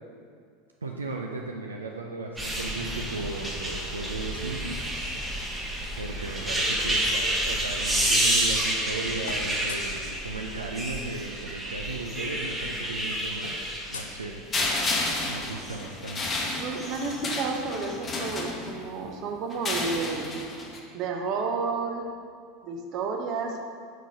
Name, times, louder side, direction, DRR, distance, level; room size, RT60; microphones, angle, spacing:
voice 1, 0.8-4.8 6.0-14.4 14.7-14.9 15.3-16.3, right 3 dB, 85° right, 0 dB, 0.4 m, -36 dB
sound 1, 2.4-15.8 16.7-17.2 17.8-17.9, right 1 dB, 10° right, 1.0 m, -29 dB
sound 2, 9.2-10.0 11.4-11.5 11.8-12.0 12.2-14.9, left 5 dB, 75° left, 0.4 m, -45 dB
sound 3, 14.5-19.0 19.5-20.8, left 2 dB, 25° left, 0.8 m, -31 dB
voice 2, 16.5-20.3 20.9-22.1 22.6-23.6, right 4 dB, 45° right, 2 dB, 0.7 m, -31 dB
4.6 x 4.2 x 5.2 m, 2.2 s
figure-of-eight pair, 80°, 0 cm